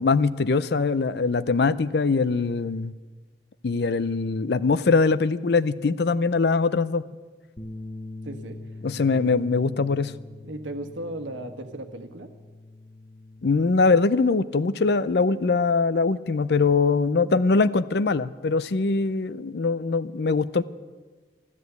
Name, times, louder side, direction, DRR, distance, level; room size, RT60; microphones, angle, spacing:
voice 1, 0.0-2.9 3.6-7.1 8.8-10.1 13.4-20.6, left 4 dB, 60° left, 17 dB, 0.5 m, -22 dB
Bass guitar, 7.6-13.8, left 2 dB, 30° left, 0.8 m, -42 dB
voice 2, 8.2-8.6 9.1-9.2 10.4-12.3, right 1 dB, 90° right, 7 dB, 1.4 m, -36 dB
13.5 x 13.0 x 8.1 m, 1.4 s
head